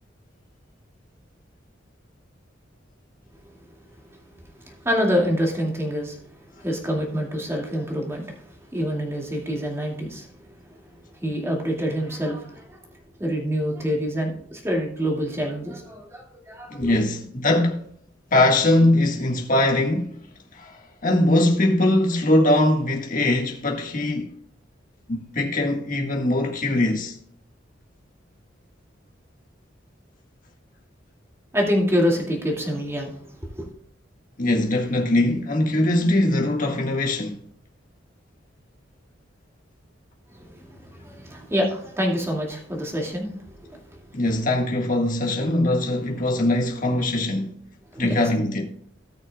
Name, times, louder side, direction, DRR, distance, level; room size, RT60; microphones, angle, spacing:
voice 1, 4.6-10.7 11.1-12.8 13.2-17.0 31.5-33.7 40.3-44.0 47.9-48.3, equal, 15° right, 2.3 m, -27 dB
voice 2, 16.7-17.8 18.3-20.1 20.5-24.4 25.1-27.1 34.4-37.4 44.1-47.5 48.0-48.6, left 1 dB, 45° left, 1.8 m, -21 dB
18.0 x 6.4 x 2.4 m
head